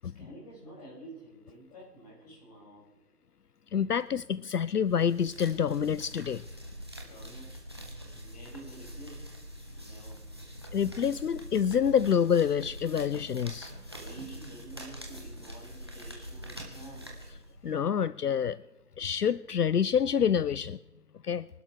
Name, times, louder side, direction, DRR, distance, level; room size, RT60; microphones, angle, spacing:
voice 1, 0.0-2.9 7.0-7.6 8.1-9.3 9.7-10.2 13.9-17.1, right 2 dB, 25° left, -7 dB, 6.4 m, -49 dB
voice 2, 3.7-6.5 10.7-13.7 17.6-18.6 19.0-20.8 21.2-21.5, left 8 dB, 75° left, 18 dB, 0.5 m, -27 dB
sound 1, 4.9-17.8, equal, 15° right, 1.2 m, -44 dB
24.5 x 12.0 x 3.4 m, 1.0 s
figure-of-eight pair, 165°, 47 cm